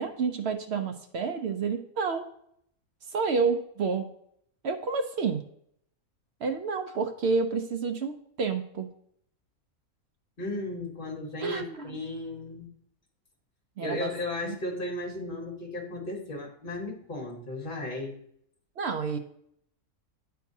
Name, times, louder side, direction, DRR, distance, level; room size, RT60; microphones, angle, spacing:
voice 1, 0.0-2.3 3.1-4.1 4.6-5.4 6.4-8.9 11.4-12.0 13.8-14.1 14.4-14.6 18.8-19.2, right 5 dB, 65° right, 6 dB, 0.7 m, -29 dB
voice 2, 10.4-12.7 13.8-18.2, left 2 dB, 40° left, 0 dB, 1.4 m, -35 dB
9.1 x 4.6 x 2.7 m, 0.69 s
omnidirectional pair, 1.5 m